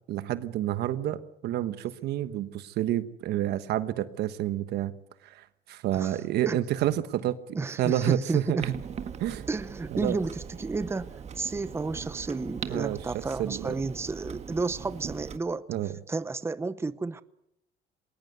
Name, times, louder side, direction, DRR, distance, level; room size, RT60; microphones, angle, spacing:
voice 1, 0.1-4.9 5.2-8.7 9.2-9.5 9.9-10.2 12.7-13.8 15.7-16.0, right 12 dB, 75° right, 1.2 m, -29 dB
voice 2, 7.5-8.6 9.5-15.7 16.1-17.2, right 3 dB, 15° right, 0.8 m, -32 dB
Clock, 8.6-15.4, right 7 dB, 40° right, 1.6 m, -41 dB
20.5 x 19.0 x 8.1 m
cardioid pair, 110°, 17 cm